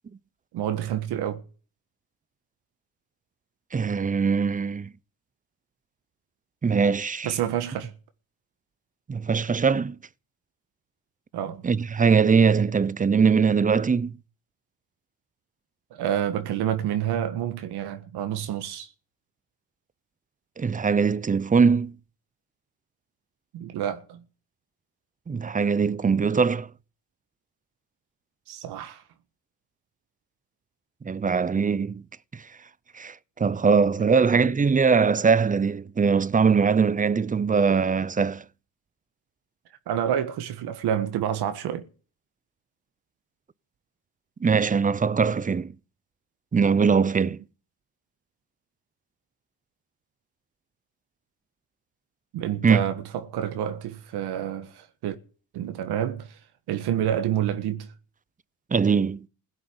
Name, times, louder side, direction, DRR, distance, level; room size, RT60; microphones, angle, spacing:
voice 1, 0.5-1.4 7.2-7.9 11.3-11.7 15.9-18.9 23.5-24.2 28.5-29.0 34.0-34.5 39.9-41.9 52.3-55.2 55.5-56.4 56.7-57.9, right 10 dB, 75° right, 1.6 m, -28 dB
voice 2, 3.7-4.9 6.6-7.3 9.1-10.0 11.6-14.2 20.6-22.0 25.3-26.7 31.0-32.0 32.3-32.5 32.9-38.4 44.4-45.7 46.5-47.4 52.6-52.8 58.7-59.3, right 5 dB, 20° right, 0.7 m, -21 dB
16.5 x 8.3 x 9.7 m
cardioid pair, 95°, 39 cm